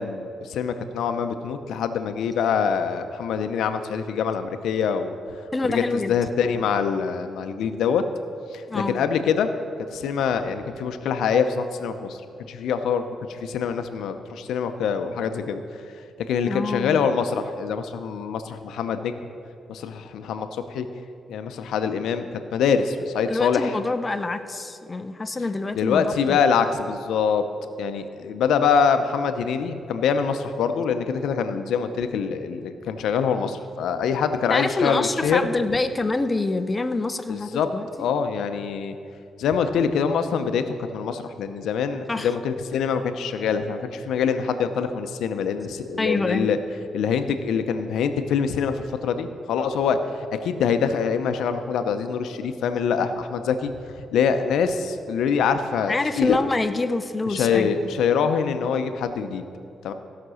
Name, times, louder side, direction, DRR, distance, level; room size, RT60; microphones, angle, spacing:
voice 1, 0.0-5.4 5.6-8.0 8.5-9.5 9.9-12.2 12.5-15.6 16.3-19.1 19.7-20.9 21.3-23.8 25.7-27.4 27.8-35.4 37.3-37.7 38.0-39.0 39.4-46.6 46.9-50.0 50.3-56.4 57.3-59.4 59.8-59.9, left 6 dB, 85° left, 8 dB, 0.7 m, -24 dB
voice 2, 5.5-6.2 8.7-9.0 16.5-17.1 23.3-26.0 26.3-26.4 34.5-37.9 42.1-42.3 46.0-46.5 55.9-58.0, left 3 dB, 25° left, 10 dB, 0.6 m, -26 dB
16.0 x 6.0 x 6.3 m, 2.5 s
cardioid pair, 95°, 0 cm